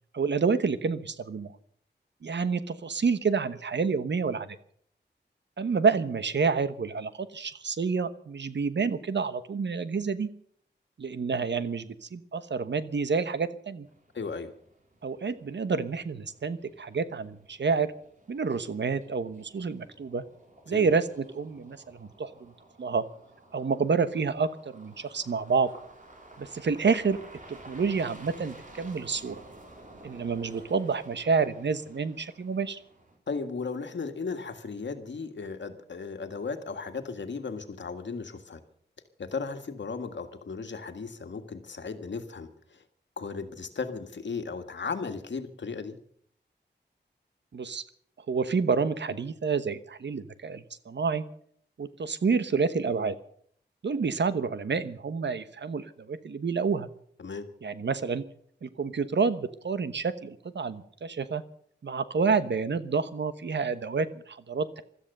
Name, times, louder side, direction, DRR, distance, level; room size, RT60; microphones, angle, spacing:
voice 1, 0.1-1.5 2.2-4.5 5.6-10.3 11.0-13.9 15.0-17.9 18.3-20.2 20.7-22.5 22.8-23.0 23.5-25.7 26.4-27.2 27.5-29.4 30.0-32.8 47.5-47.8 48.3-51.2 51.8-53.2 53.8-56.9 57.6-58.2 58.6-61.4 61.8-64.8, right 5 dB, 75° right, 13 dB, 1.1 m, -28 dB
sound 1, 13.9-33.2, right 1 dB, 45° right, 4.1 m, -53 dB
voice 2, 14.1-14.5 20.7-20.9 33.3-38.6 39.2-42.8 43.2-46.0 57.2-57.5, left 4 dB, 80° left, 7 dB, 1.7 m, -36 dB
16.5 x 13.0 x 6.7 m, 0.62 s
wide cardioid pair, 80°, 19 cm